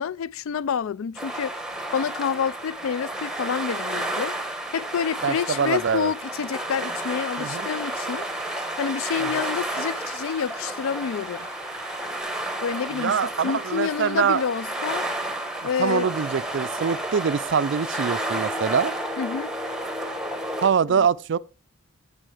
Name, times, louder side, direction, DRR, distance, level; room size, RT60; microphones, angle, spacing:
voice 1, 0.0-1.6 1.9-4.4 4.7-8.3 8.8-11.5 12.6-15.1 15.6-16.1 19.2-19.5 20.9-21.1, left 7 dB, 65° left, 0.3 m, -28 dB
sound 1, 1.2-20.7, right 1 dB, 5° right, 1.0 m, -31 dB
voice 2, 5.2-6.1 7.4-7.7 9.2-9.3 12.9-14.4 15.8-18.9 20.6-21.4, right 6 dB, 55° right, 0.4 m, -24 dB
sound 2, 6.8-12.2, equal, 10° left, 2.0 m, -43 dB
8.9 x 8.5 x 3.3 m
head